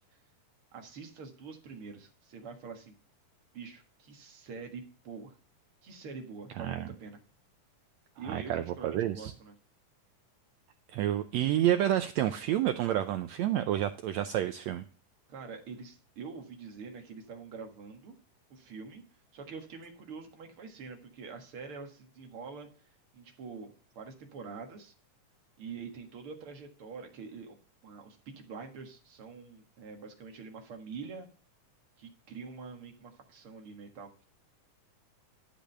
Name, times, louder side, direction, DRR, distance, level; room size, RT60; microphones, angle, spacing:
voice 1, 0.7-2.9 3.5-5.4 5.8-7.2 8.2-9.5 15.3-18.2 18.5-19.0 19.3-22.7 23.1-24.9 25.6-31.3 32.0-34.1, right 5 dB, 50° right, 4 dB, 2.2 m, -45 dB
voice 2, 6.6-6.9 8.3-9.3 10.9-14.8, right 12 dB, 85° right, 9 dB, 1.5 m, -29 dB
12.0 x 5.1 x 6.6 m, 0.42 s
omnidirectional pair, 3.8 m